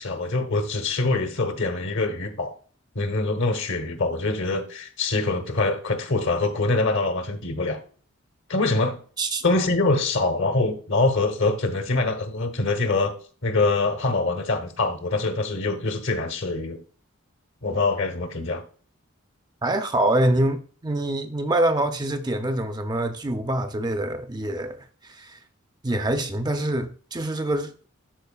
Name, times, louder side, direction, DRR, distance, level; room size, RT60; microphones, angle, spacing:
voice 1, 0.0-2.5 2.9-7.8 8.5-9.0 9.4-13.1 13.4-16.8 17.6-18.6, left 3 dB, 60° left, 1.0 m, -24 dB
voice 2, 19.6-24.8 25.0-25.4 25.8-27.7, right 1 dB, 20° right, 0.5 m, -25 dB
12.0 x 4.3 x 2.3 m
head